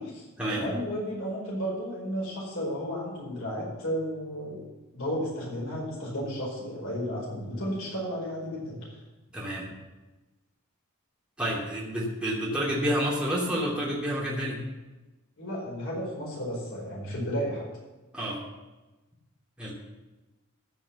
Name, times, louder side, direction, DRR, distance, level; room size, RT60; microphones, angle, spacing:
voice 1, 0.0-4.6 4.9-9.0 15.4-17.6, equal, 70° left, -5 dB, 4.8 m, -33 dB
voice 2, 9.3-9.7 11.4-14.6 18.1-18.4 19.6-19.7, equal, 5° right, -5 dB, 2.9 m, -29 dB
15.0 x 5.8 x 7.2 m, 1.1 s
head